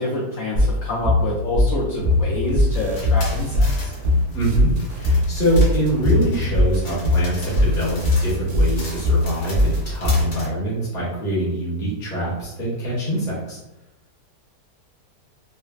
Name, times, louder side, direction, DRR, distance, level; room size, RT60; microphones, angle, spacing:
voice 1, 0.0-3.9, left 2 dB, 70° left, -4 dB, 0.9 m, -27 dB
sound 1, 0.6-10.3, left 1 dB, 55° right, 0.6 m, -19 dB
sound 2, 2.0-9.3 9.5-10.0, left 1 dB, 85° right, 1.2 m, -30 dB
sound 3, 2.6-10.5, left 2 dB, 85° left, 0.4 m, -38 dB
voice 2, 4.3-13.6, right 1 dB, 35° left, -7 dB, 1.1 m, -24 dB
3.8 x 2.1 x 2.4 m, 0.94 s
omnidirectional pair, 1.8 m